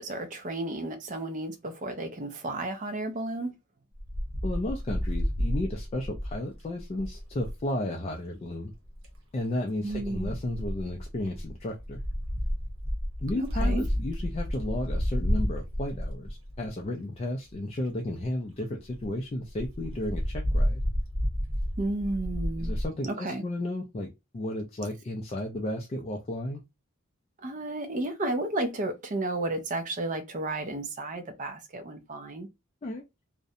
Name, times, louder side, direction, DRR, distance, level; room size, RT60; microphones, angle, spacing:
voice 1, 0.0-3.5 9.8-10.3 13.4-13.8 21.8-22.8 23.0-23.4 27.4-32.5, right 2 dB, 40° right, 0.4 m, -32 dB
Wind, 4.0-7.6 8.7-9.2 9.9-16.9 17.5-17.6 17.8-17.9 18.2-18.3 18.6-18.7 18.9-19.1 19.5-22.9, equal, 70° right, 0.9 m, -31 dB
voice 2, 4.4-8.7 9.3-12.0 13.2-20.8 22.6-24.1 24.3-26.6 32.8-33.0, left 1 dB, 30° left, 0.3 m, -33 dB
2.4 x 2.1 x 2.6 m
head